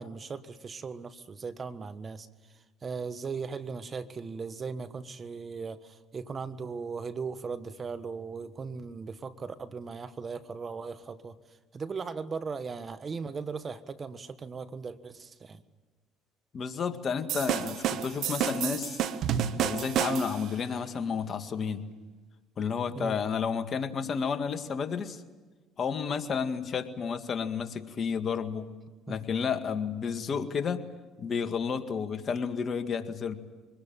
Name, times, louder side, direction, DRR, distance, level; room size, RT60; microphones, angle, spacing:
voice 1, 0.0-15.6 22.9-23.2 29.1-29.2, right 5 dB, 35° right, 12 dB, 1.4 m, -38 dB
voice 2, 16.5-19.0 19.6-21.8 22.6-25.2 25.8-28.7 29.1-30.8 31.2-33.3, left 6 dB, 45° left, 8 dB, 2.0 m, -31 dB
sound 1, 17.3-20.5, right 9 dB, 65° right, 1.3 m, -30 dB
24.0 x 20.0 x 9.0 m, 1.3 s
hypercardioid pair, 70°, 0 cm